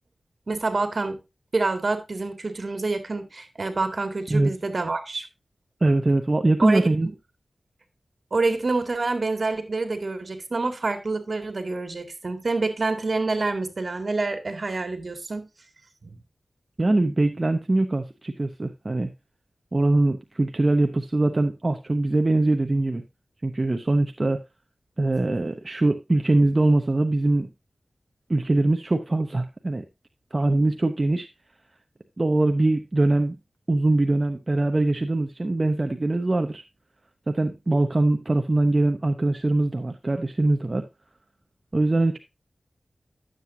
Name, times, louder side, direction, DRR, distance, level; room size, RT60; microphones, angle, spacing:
voice 1, 0.5-1.2 1.5-5.3 6.6-6.9 8.3-15.5 16.0-16.2, right 3 dB, 60° right, 2.1 m, -27 dB
voice 2, 5.8-7.1 16.8-19.1 19.7-23.0 23.4-24.4 25.0-27.5 28.3-29.8 30.3-31.3 32.2-33.4 33.7-36.6 37.3-40.8 41.7-42.2, right 2 dB, 40° right, 0.9 m, -22 dB
11.0 x 7.7 x 2.7 m
cardioid pair, 40°, 0 cm